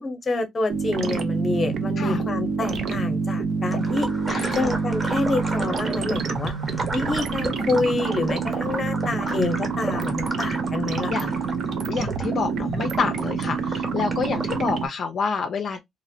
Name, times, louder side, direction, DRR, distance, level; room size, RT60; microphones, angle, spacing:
voice 1, 0.0-4.1 4.5-6.5 6.9-11.3, left 2 dB, 35° left, 0.8 m, -27 dB
sound 1, 0.7-14.9, right 4 dB, 65° right, 0.6 m, -27 dB
sound 2, 3.7-14.6, right 2 dB, 25° right, 1.0 m, -34 dB
voice 2, 4.3-4.7 9.2-9.4 11.0-11.3 11.9-15.8, left 5 dB, 55° left, 0.4 m, -28 dB
2.9 x 2.0 x 2.7 m
cardioid pair, 90°, 0 cm